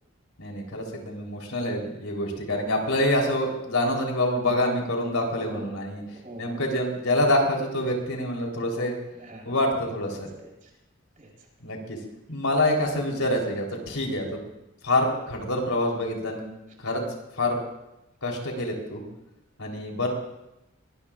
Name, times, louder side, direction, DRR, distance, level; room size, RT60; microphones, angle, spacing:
voice 1, 0.4-6.0 6.4-9.0 9.5-10.3 11.6-12.0 12.3-14.4 14.8-16.4 16.8-17.0 17.3-17.6 18.2-19.0 19.6-20.1, left 1 dB, 85° left, 0 dB, 3.8 m, -26 dB
voice 2, 6.1-6.6 9.1-9.5 10.1-10.7 11.2-11.5, right 1 dB, 40° right, -2 dB, 4.2 m, -45 dB
23.5 x 19.5 x 2.5 m, 0.90 s
head